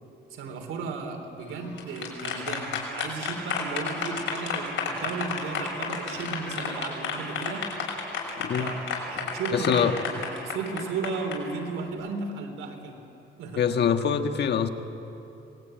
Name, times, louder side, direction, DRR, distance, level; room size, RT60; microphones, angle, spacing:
voice 1, 0.3-7.7 8.6-13.0 13.4-13.6, right 4 dB, 90° right, 4 dB, 3.5 m, -34 dB
sound 1, 1.6-11.3, left 6 dB, 75° left, 5.8 m, -31 dB
voice 2, 8.4-8.7 9.5-9.9 13.6-14.7, left 7 dB, 55° left, 6 dB, 1.5 m, -24 dB
26.5 x 20.0 x 9.1 m, 3.0 s
cardioid pair, 125°, 20 cm